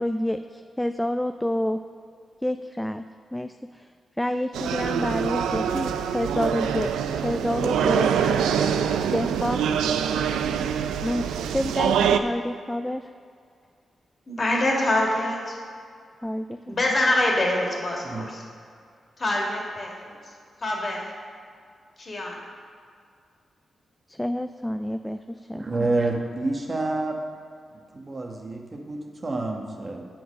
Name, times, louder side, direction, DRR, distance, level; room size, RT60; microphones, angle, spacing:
voice 1, 0.0-1.8 2.4-3.0 3.3-3.9 4.2-6.9 7.2-8.1 9.1-9.7 11.0-13.1 16.2-16.6 24.1-25.7, left 1 dB, 10° left, 8 dB, 0.3 m, -28 dB
sound 1, 4.5-12.2, right 8 dB, 85° right, 0.3 m, -24 dB
voice 2, 14.3-15.6 16.7-18.4 19.2-20.3 20.6-21.1 22.0-22.4, left 1 dB, 45° left, -2 dB, 2.0 m, -25 dB
voice 3, 25.5-27.2 27.9-30.0, right 2 dB, 40° right, 2 dB, 1.2 m, -28 dB
7.4 x 4.6 x 6.3 m, 2.2 s
supercardioid pair, 40°, 0 cm